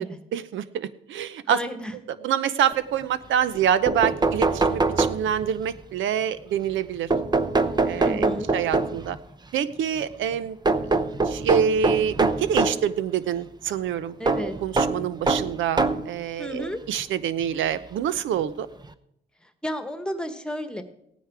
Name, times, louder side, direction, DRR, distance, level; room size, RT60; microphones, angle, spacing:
voice 1, 0.3-1.6 2.2-7.1 7.8-9.2 9.5-10.6 10.8-11.0 11.2-14.2 14.4-18.7, right 8 dB, 75° right, 15 dB, 0.8 m, -26 dB
voice 2, 1.5-1.9 7.9-8.5 14.2-14.5 16.4-16.8 19.4-20.8, equal, 5° left, 8 dB, 1.4 m, -32 dB
sound 1, 3.5-3.6 3.9-5.6 7.1-9.2 10.7-12.9 14.3-16.1 17.0-17.1 18.4-18.5 18.8-18.9, right 3 dB, 20° right, 0.7 m, -23 dB
16.0 x 9.4 x 4.8 m, 0.76 s
cardioid pair, 90°, 20 cm